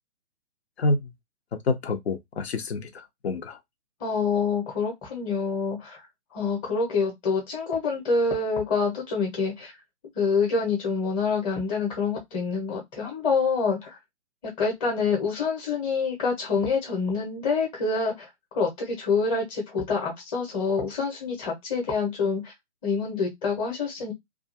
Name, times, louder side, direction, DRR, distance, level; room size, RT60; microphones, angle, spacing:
voice 1, 0.8-1.1 1.7-3.6, left 3 dB, 65° left, 0.8 m, -27 dB
voice 2, 4.0-6.0 6.3-9.7 10.1-14.0 14.6-18.3 18.5-22.5 22.8-24.1, left 4 dB, 20° left, 0.9 m, -26 dB
2.6 x 2.3 x 2.5 m
figure-of-eight pair, 135°, 35 cm